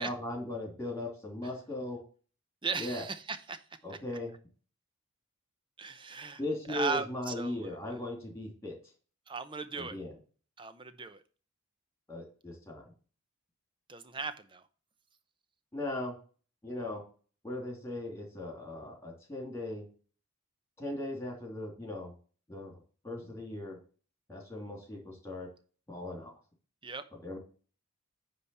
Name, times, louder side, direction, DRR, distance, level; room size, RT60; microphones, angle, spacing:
voice 1, 0.0-2.0 2.8-3.0 3.8-4.3 6.4-8.7 9.7-10.1 12.1-12.9 15.7-16.2 16.6-17.0 17.4-19.9 20.8-22.1 22.5-22.7 23.0-23.8 24.3-25.5 25.9-26.4 27.2-27.4, left 2 dB, 15° left, 3.0 m, -38 dB
voice 2, 2.6-3.6 3.9-4.0 5.8-6.4 6.7-7.8 9.3-10.0 10.6-11.2 13.9-14.6 26.8-27.0, right 4 dB, 25° right, 0.7 m, -37 dB
9.7 x 3.5 x 7.0 m
head